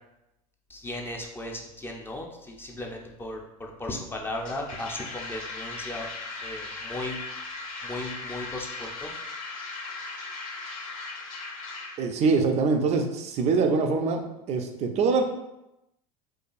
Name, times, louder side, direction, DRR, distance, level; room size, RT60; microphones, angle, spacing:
voice 1, 0.7-6.1 6.4-7.2 7.8-9.1, left 1 dB, 10° left, 1 dB, 0.5 m, -36 dB
sound 1, 4.3-12.0, left 3 dB, 75° left, 0.8 m, -38 dB
voice 2, 12.0-15.2, right 4 dB, 35° right, 5 dB, 0.5 m, -24 dB
4.7 x 2.3 x 2.5 m, 0.90 s
hypercardioid pair, 80°, 18 cm